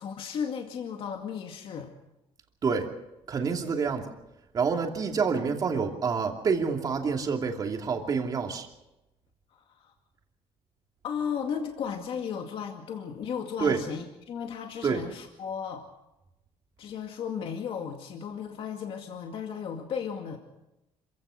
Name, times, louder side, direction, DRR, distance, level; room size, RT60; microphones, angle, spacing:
voice 1, 0.0-1.9 9.5-9.9 11.0-15.8 16.8-20.4, left 7 dB, 55° left, 3 dB, 2.2 m, -35 dB
voice 2, 3.3-4.1 4.5-8.7 13.6-13.8 14.8-15.0, right 5 dB, 35° right, 3 dB, 2.8 m, -27 dB
26.5 x 16.5 x 6.5 m, 0.94 s
cardioid pair, 140°, 11 cm